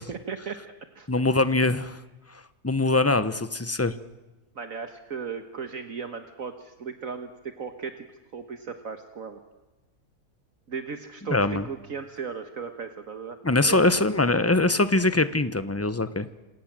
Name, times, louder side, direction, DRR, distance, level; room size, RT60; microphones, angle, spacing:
voice 1, 0.0-1.1 4.6-8.1 8.3-9.4 10.7-11.4 11.6-13.9 14.3-14.6, right 5 dB, 60° right, 7 dB, 1.8 m, -36 dB
voice 2, 1.1-2.0 2.6-3.9 11.3-11.6 13.4-16.2, left 2 dB, 10° left, 13 dB, 0.9 m, -22 dB
28.0 x 27.0 x 7.6 m, 1.1 s
omnidirectional pair, 1.6 m